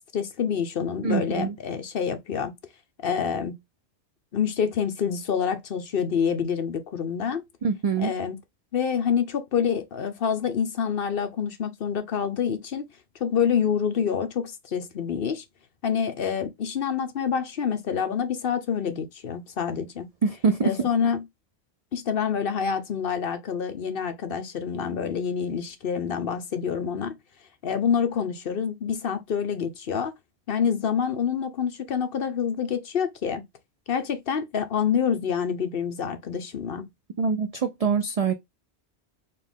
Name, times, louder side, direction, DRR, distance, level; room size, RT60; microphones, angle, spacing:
voice 1, 0.1-2.5 3.0-3.6 4.3-7.4 8.0-8.4 8.7-12.9 13.2-15.4 15.8-20.1 20.6-21.3 21.9-27.2 27.6-30.1 30.5-33.4 33.9-36.9, left 7 dB, 60° left, 0.9 m, -27 dB
voice 2, 1.0-1.5 7.6-8.1 20.2-20.9 37.2-38.3, right 5 dB, 45° right, 0.5 m, -24 dB
4.2 x 2.4 x 3.5 m
omnidirectional pair, 1.1 m